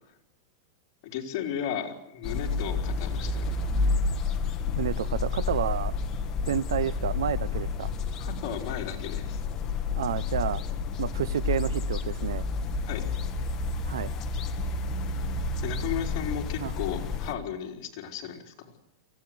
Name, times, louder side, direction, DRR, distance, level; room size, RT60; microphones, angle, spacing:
voice 1, 1.0-3.6 8.2-9.4 12.9-13.0 15.6-18.7, left 9 dB, 45° left, 1 dB, 4.4 m, -35 dB
sound 1, 2.2-17.3, left 4 dB, 25° left, 1.8 m, -30 dB
voice 2, 4.8-5.9 6.4-7.9 10.0-10.6 11.0-12.4 13.9-14.1 16.6-16.7, right 9 dB, 90° right, 19 dB, 0.9 m, -30 dB
23.5 x 17.0 x 8.0 m, 0.87 s
supercardioid pair, 150°, 2 cm